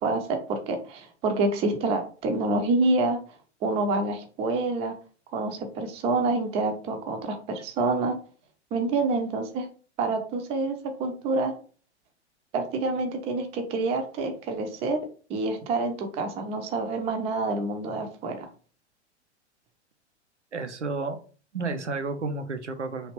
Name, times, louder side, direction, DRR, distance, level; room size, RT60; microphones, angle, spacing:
voice 1, 0.0-3.2 3.6-4.9 5.3-8.1 8.7-9.7 10.0-10.7 11.0-11.5 12.5-15.0 15.3-18.5, right 3 dB, 20° right, 5 dB, 0.5 m, -27 dB
voice 2, 20.5-21.2 21.5-23.1, right 3 dB, 85° right, 7 dB, 0.6 m, -31 dB
3.2 x 2.5 x 2.9 m, 0.38 s
figure-of-eight pair, 100°, 35 cm